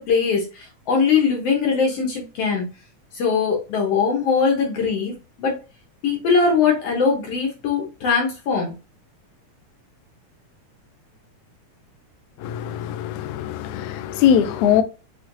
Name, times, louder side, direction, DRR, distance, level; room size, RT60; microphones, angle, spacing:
voice 1, 0.0-2.7 3.1-5.6 6.0-8.8, left 5 dB, 65° left, 1.8 m, -21 dB
voice 2, 12.4-14.8, left 9 dB, 80° left, 1.8 m, -21 dB
6.2 x 3.1 x 2.6 m
omnidirectional pair, 3.6 m